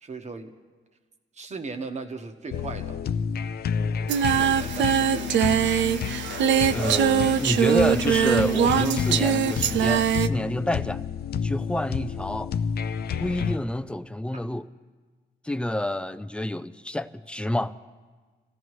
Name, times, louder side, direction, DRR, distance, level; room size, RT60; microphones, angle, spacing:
voice 1, 0.0-0.5 1.3-3.0 4.3-5.4, right 4 dB, 40° right, 1.2 m, -37 dB
sound 1, 2.5-13.6, left 7 dB, 60° left, 0.5 m, -29 dB
Singing, 4.1-10.3, right 9 dB, 85° right, 0.5 m, -22 dB
voice 2, 6.7-11.0 11.4-12.5 13.2-14.7 15.4-17.7, left 1 dB, 5° left, 0.4 m, -28 dB
26.5 x 15.5 x 3.1 m
cardioid pair, 125°, 19 cm